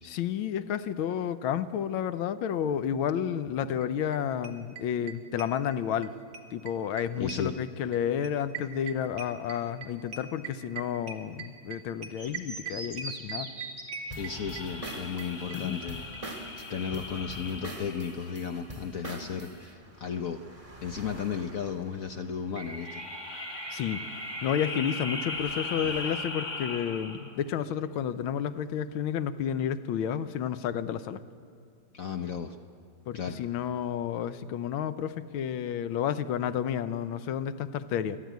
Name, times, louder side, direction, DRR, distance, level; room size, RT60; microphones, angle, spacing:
voice 1, 0.0-6.1 6.5-13.5 15.5-15.8 23.7-24.0 24.4-31.2 33.1-38.2, left 9 dB, 90° left, 11 dB, 1.6 m, -31 dB
sound 1, 3.8-3.9 4.1-4.2 4.4-6.1 6.3-15.6 15.8-15.9 16.1-16.2 16.4-16.5, right 7 dB, 70° right, 2.0 m, -41 dB
voice 2, 7.2-7.6 14.2-16.1 16.7-20.4 20.8-23.0 25.8-25.9 31.9-32.5 33.1-33.4, left 7 dB, 60° left, 7 dB, 0.9 m, -34 dB
sound 2, 12.2-26.2, right 2 dB, 15° right, 1.9 m, -43 dB
sound 3, 14.1-18.9 22.7-27.4, left 3 dB, 25° left, 1.1 m, -39 dB
24.0 x 13.5 x 9.3 m, 2.2 s
omnidirectional pair, 2.2 m